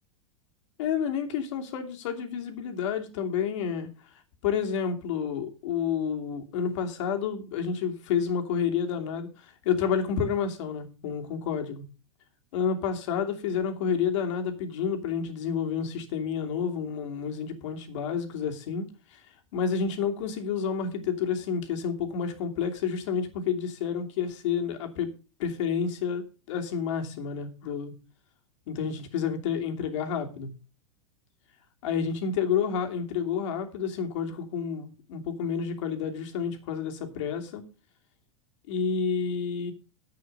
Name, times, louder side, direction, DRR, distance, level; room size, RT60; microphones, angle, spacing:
voice 1, 0.8-3.9 4.4-11.8 12.5-19.2 19.5-25.1 25.4-27.9 28.7-30.5 31.8-37.6 38.7-39.7, left 7 dB, 65° left, 2.8 m, -30 dB
10.5 x 8.5 x 5.4 m
hypercardioid pair, 115°, 17 cm